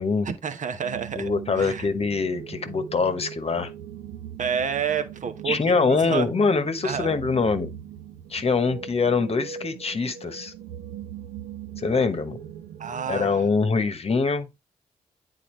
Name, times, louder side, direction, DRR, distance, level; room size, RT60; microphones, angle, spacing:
voice 1, 0.2-1.9 4.4-5.6 5.9-6.3 6.8-7.1 12.8-13.4, right 7 dB, 55° right, 1.0 m, -29 dB
sound 1, 0.7-13.5, right 9 dB, 85° right, 0.7 m, -40 dB
voice 2, 1.2-3.7 5.4-7.7 8.3-10.5 11.8-12.4 13.1-14.5, left 4 dB, 40° left, 1.0 m, -24 dB
8.6 x 3.9 x 3.1 m
supercardioid pair, 50°, 15 cm